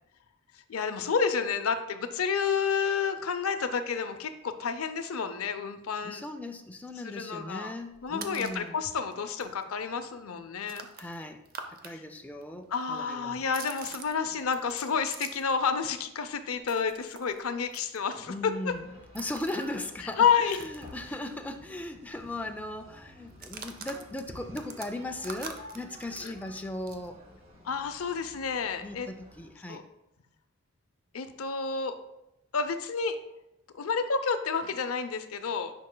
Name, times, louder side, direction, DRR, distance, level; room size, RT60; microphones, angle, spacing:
voice 1, 0.5-6.2 7.0-7.7 8.0-10.9 11.9-12.0 12.7-18.7 20.2-20.6 26.2-26.3 27.6-29.1 29.7-29.8 31.1-32.0 32.5-33.2 33.7-35.7, left 6 dB, 80° left, 9 dB, 0.6 m, -30 dB
voice 2, 6.0-8.8 11.0-11.4 11.7-13.4 18.2-27.2 28.8-29.8, left 1 dB, 5° left, 4 dB, 0.4 m, -38 dB
sound 1, 7.9-8.7 9.1-9.2 9.4-11.9 12.2-15.6 15.9-21.5 21.8-21.9 22.2-22.5 23.3-27.1, right 5 dB, 45° right, 0.6 m, -46 dB
sound 2, 18.6-29.5, left 1 dB, 30° right, 1.8 m, -52 dB
9.5 x 5.3 x 2.2 m, 0.87 s
head